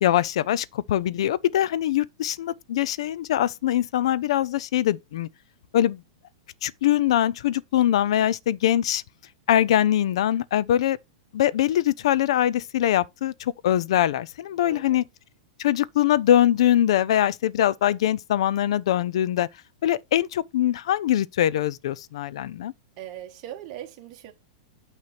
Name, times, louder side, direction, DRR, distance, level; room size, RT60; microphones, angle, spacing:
voice 1, 0.0-5.3 5.7-6.0 6.6-9.0 9.5-11.0 11.3-13.3 13.6-15.0 15.6-19.5 19.8-22.7, left 11 dB, 65° left, 0.5 m, -22 dB
voice 2, 14.5-15.0 23.0-24.3, right 12 dB, 40° right, 1.5 m, -40 dB
8.8 x 2.9 x 5.8 m
supercardioid pair, 155°, 3 cm